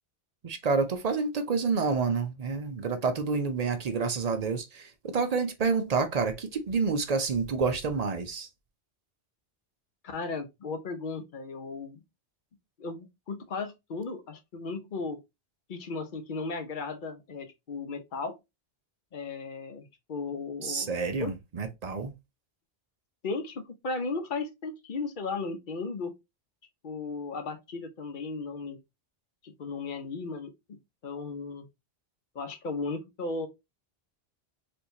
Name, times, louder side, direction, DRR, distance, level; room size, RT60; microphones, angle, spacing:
voice 1, 0.4-8.5 20.6-22.1, right 4 dB, 50° right, 0.6 m, -28 dB
voice 2, 10.0-12.0 12.8-15.2 15.7-18.4 19.1-20.9 21.2-21.3 23.2-26.1 26.8-28.8 29.4-30.8 31.0-31.6 32.3-33.5, left 4 dB, 55° left, 0.9 m, -36 dB
4.4 x 2.7 x 2.6 m
omnidirectional pair, 1.1 m